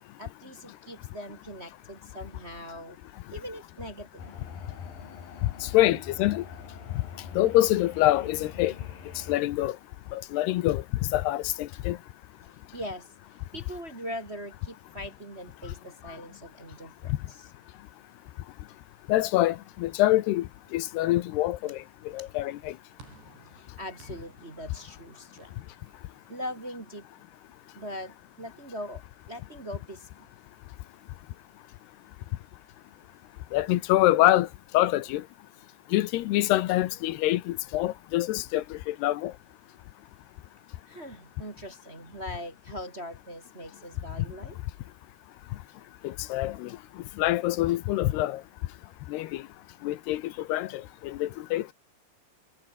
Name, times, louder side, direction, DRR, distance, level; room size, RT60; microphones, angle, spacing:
voice 1, 0.2-3.0 3.3-4.4 5.9-6.0 12.7-13.1 13.5-17.5 22.2-22.3 23.5-25.5 26.3-27.1 27.7-29.0 29.3-30.3 40.9-44.6, equal, 25° right, 1.5 m, -41 dB
sound 1, 4.2-9.4, left 6 dB, 60° left, 5.6 m, -44 dB
voice 2, 5.6-6.4 7.4-8.7 9.3-9.8 10.1-10.8 11.1-12.0 19.1-21.8 22.1-22.7 33.5-34.5 34.7-35.2 35.9-39.3 46.0-46.7 47.2-48.4 49.1-49.4 49.8-51.7, left 16 dB, 80° left, 3.0 m, -25 dB
sound 2, 23.0-27.4, right 5 dB, 80° right, 8.6 m, -57 dB
omnidirectional pair, 4.7 m